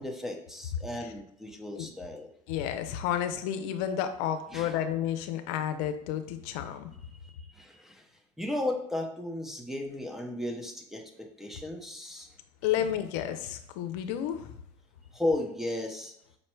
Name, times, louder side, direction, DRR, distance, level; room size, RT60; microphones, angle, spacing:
voice 1, 0.0-2.3 4.5-4.8 7.2-8.1 8.4-12.3 15.1-16.1, left 1 dB, ahead, 2 dB, 0.7 m, -35 dB
voice 2, 2.5-6.9 12.6-14.6, left 10 dB, 90° left, 8 dB, 0.5 m, -31 dB
5.3 x 2.1 x 4.4 m, 0.75 s
cardioid pair, 120°, 15 cm